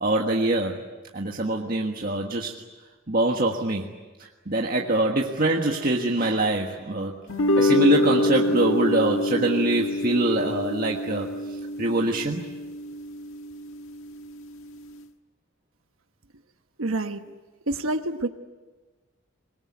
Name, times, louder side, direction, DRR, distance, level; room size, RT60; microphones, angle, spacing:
voice 1, 0.0-2.6 3.1-3.9 4.2-7.2 7.6-11.3 11.8-12.4, right 2 dB, 45° right, 1 dB, 1.6 m, -24 dB
sound 1, 7.3-13.8, left 1 dB, 85° left, 1.5 m, -26 dB
voice 2, 16.8-17.2 17.7-18.3, right 2 dB, 80° right, 8 dB, 1.2 m, -27 dB
24.5 x 22.0 x 9.6 m, 1.3 s
head